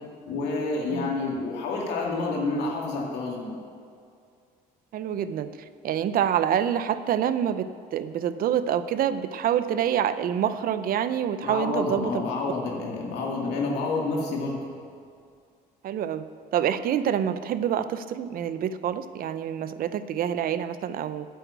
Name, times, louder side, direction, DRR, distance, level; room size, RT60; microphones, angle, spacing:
voice 1, 0.3-3.6 11.4-14.6, left 3 dB, 85° left, -2 dB, 2.1 m, -29 dB
voice 2, 4.9-12.2 15.8-21.3, right 9 dB, 60° right, 12 dB, 0.6 m, -27 dB
9.2 x 8.0 x 8.2 m, 2.3 s
cardioid pair, 110°, 17 cm